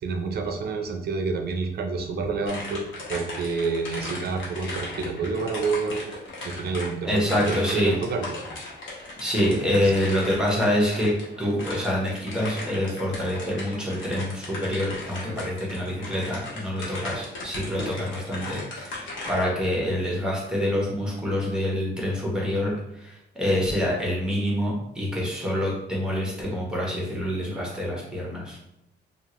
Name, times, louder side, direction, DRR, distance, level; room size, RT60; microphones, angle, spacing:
voice 1, 0.0-6.1 6.4-8.4 9.5-9.9, right 4 dB, 55° right, 3 dB, 0.6 m, -29 dB
sound 1, 2.4-19.4, left 2 dB, 75° left, 1.1 m, -37 dB
voice 2, 7.0-8.0 9.2-22.7 23.0-23.1 23.4-28.6, equal, 5° right, -4 dB, 1.2 m, -26 dB
2.7 x 2.4 x 3.0 m, 0.84 s
cardioid pair, 90°, 20 cm